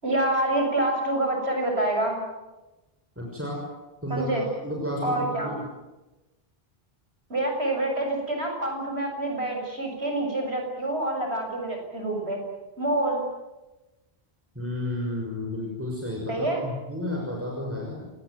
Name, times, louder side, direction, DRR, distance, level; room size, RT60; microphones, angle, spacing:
voice 1, 0.0-2.2 4.1-4.5 5.0-5.5 7.3-12.4 12.8-13.2 16.3-16.6, right 1 dB, 85° right, 2 dB, 7.3 m, -27 dB
voice 2, 3.2-3.6 4.0-5.6 14.6-16.3 16.6-18.1, left 1 dB, 10° right, -1 dB, 6.1 m, -32 dB
28.5 x 19.5 x 9.5 m, 1.1 s
omnidirectional pair, 1.1 m